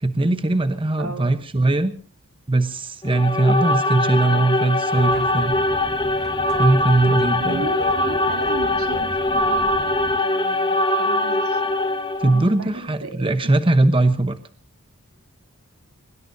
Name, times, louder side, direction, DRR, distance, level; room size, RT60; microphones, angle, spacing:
voice 1, 0.0-1.9 2.5-5.6 6.6-7.7 12.2-14.3, right 2 dB, 25° right, 9 dB, 1.0 m, -20 dB
voice 2, 1.0-1.3 7.4-11.7 12.2-13.3, right 2 dB, 75° right, 6 dB, 2.9 m, -36 dB
sound 1, 3.0-12.5, left 2 dB, 20° left, 1.3 m, -22 dB
sound 2, 4.9-10.2, equal, 5° left, 1.7 m, -37 dB
23.5 x 21.0 x 2.7 m, 0.41 s
head